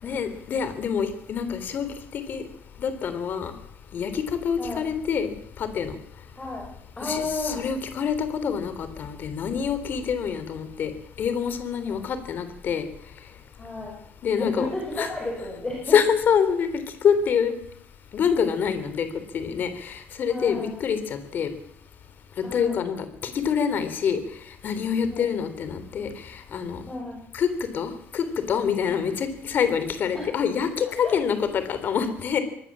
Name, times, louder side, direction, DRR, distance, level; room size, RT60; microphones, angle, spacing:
voice 1, 0.0-2.4 2.8-3.5 3.9-5.9 7.0-10.9 11.2-12.8 14.2-14.7 15.0-15.1 15.9-16.7 17.0-17.5 18.1-19.1 19.3-21.5 22.4-24.2 24.6-26.8 27.3-27.5 27.7-32.4, left 7 dB, 45° left, 10 dB, 3.3 m, -26 dB
voice 2, 7.0-7.6 13.5-13.9 14.4-16.0 20.3-20.7 22.4-22.7 25.1-25.2 26.9-27.2 28.9-29.0 30.1-30.2 31.0-31.1, left 2 dB, 15° left, -1 dB, 6.4 m, -32 dB
24.0 x 19.5 x 7.5 m, 0.70 s
cardioid pair, 155°, 5 cm